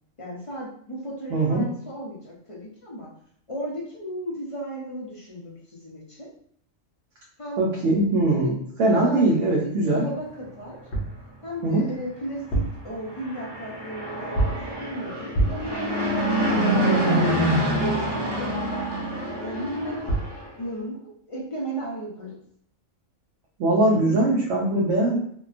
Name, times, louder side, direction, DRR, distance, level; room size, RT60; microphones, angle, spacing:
voice 1, 0.2-3.1 3.5-6.3 7.4-7.6 7.8-8.0 8.9-9.5 9.8-10.8 11.4-14.5 14.8-16.2 17.4-18.8 19.4-20.1 20.6-21.0 21.3-22.4 23.9-24.2, right 1 dB, 35° left, -4 dB, 0.5 m, -35 dB
voice 2, 1.3-1.7 7.6-8.5 8.8-10.0 11.6-11.8 23.6-25.2, right 2 dB, 75° right, -3 dB, 1.0 m, -21 dB
sound 1, 10.9-11.2 12.3-12.9 14.3-14.7 15.3-15.8 19.8-19.9 20.1-20.4, right 2 dB, 65° left, 0.9 m, -26 dB
Fixed-wing aircraft airplane, 13.1-20.5, right 1 dB, 40° right, 0.3 m, -26 dB
2.8 x 2.2 x 2.4 m, 0.63 s
omnidirectional pair, 1.3 m